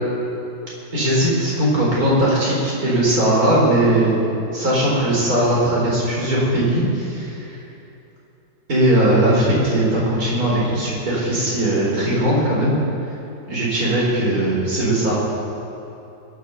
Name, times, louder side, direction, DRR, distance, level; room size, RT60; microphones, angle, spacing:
voice 1, 0.9-4.2 4.5-7.4 8.7-12.8 13.5-15.1, right 1 dB, 50° right, -6 dB, 4.7 m, -19 dB
21.5 x 7.6 x 6.9 m, 2.9 s
omnidirectional pair, 1.9 m